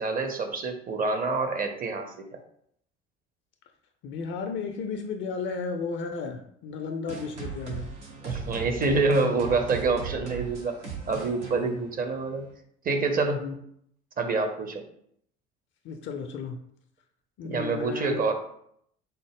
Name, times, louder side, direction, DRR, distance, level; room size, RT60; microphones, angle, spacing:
voice 1, 0.0-2.2 8.2-12.5 12.8-13.4 14.2-14.8 17.4-18.3, right 3 dB, 25° right, 5 dB, 0.5 m, -27 dB
voice 2, 4.0-7.9 11.6-11.8 13.4-13.5 15.8-16.6 17.4-18.2, left 5 dB, 35° left, 5 dB, 0.4 m, -34 dB
sound 1, 7.1-12.5, right 5 dB, 85° right, 0.7 m, -38 dB
4.0 x 2.0 x 3.4 m, 0.69 s
figure-of-eight pair, 55°, 34 cm